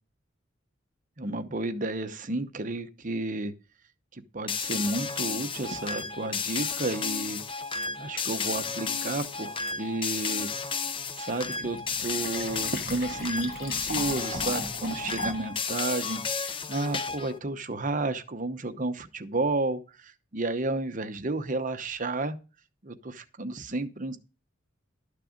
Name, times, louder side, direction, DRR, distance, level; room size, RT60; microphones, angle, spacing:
voice 1, 1.2-3.5 4.1-7.4 8.0-10.5 11.1-22.4 22.8-24.2, right 2 dB, 40° right, 9 dB, 0.9 m, -32 dB
sound 1, 4.5-17.4, left 5 dB, 25° left, 0.6 m, -33 dB
Fill (with liquid), 11.6-15.6, left 1 dB, 45° left, 2.4 m, -38 dB
12.5 x 6.6 x 5.1 m, 0.33 s
head